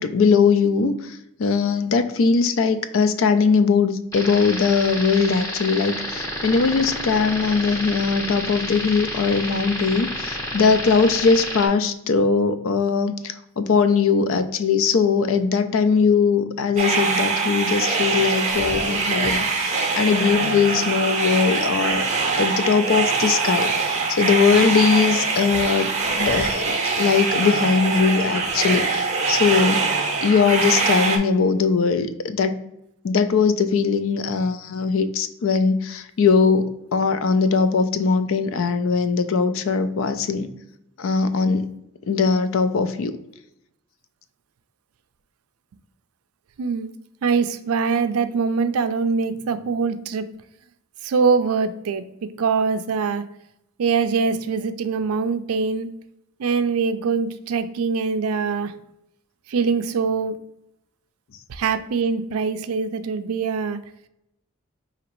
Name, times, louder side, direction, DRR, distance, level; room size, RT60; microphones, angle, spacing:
voice 1, 0.0-22.0 22.4-29.9 30.2-32.6 33.0-40.5 41.0-41.7 42.1-43.2, left 5 dB, 65° left, 10 dB, 0.4 m, -20 dB
sound 1, 4.1-11.7, equal, 15° left, 0.6 m, -30 dB
sound 2, 16.8-31.2, right 4 dB, 30° right, 0.6 m, -23 dB
voice 2, 46.6-46.9 47.2-50.2 51.0-52.0 52.4-53.2 53.8-55.9 56.4-58.7 59.5-60.4 61.5-63.8, right 5 dB, 85° right, 11 dB, 0.4 m, -23 dB
5.0 x 2.8 x 3.0 m, 0.82 s
head